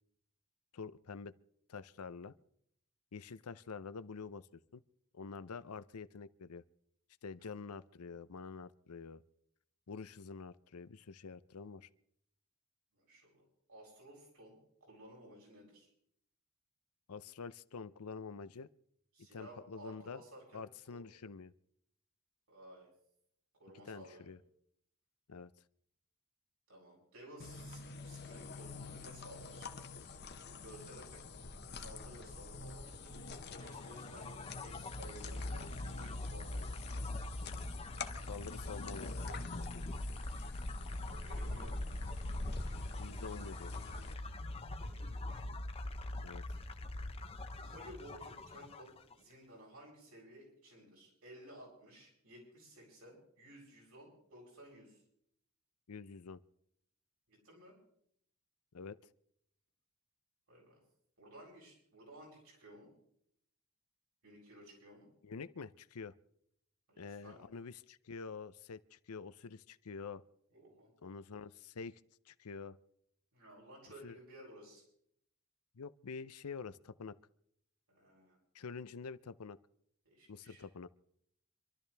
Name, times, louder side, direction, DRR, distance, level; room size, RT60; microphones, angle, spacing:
voice 1, 0.7-1.3 1.7-2.3 3.1-4.5 4.7-4.8 5.1-6.6 7.2-9.2 9.9-11.9 17.1-18.7 19.3-20.2 20.5-21.5 23.9-24.4 25.3-25.5 38.3-39.2 43.0-43.7 46.2-46.4 55.9-56.4 58.7-59.0 65.2-66.1 67.0-70.2 71.0-72.0 72.3-72.8 74.0-74.1 75.7-77.1 78.5-79.6 80.3-80.9, left 5 dB, 90° left, 15 dB, 0.6 m, -47 dB
voice 2, 12.9-13.4 13.7-15.9 19.1-20.6 20.9-21.1 22.5-22.9 23.6-24.4 26.7-29.7 30.6-31.2 31.7-33.2 33.6-35.7 36.0-36.9 41.1-41.8 44.2-45.5 47.2-47.3 47.6-55.0 57.3-57.8 60.5-60.8 61.2-62.9 64.2-65.1 66.9-67.6 70.5-70.9 73.3-74.8 77.9-78.4 80.0-80.6, right 1 dB, 80° right, -3 dB, 7.9 m, -56 dB
sound 1, 27.4-44.1, left 3 dB, 50° left, 1.0 m, -47 dB
sound 2, 33.4-49.1, left 1 dB, 25° left, 0.8 m, -43 dB
26.5 x 12.5 x 3.4 m, 0.71 s
head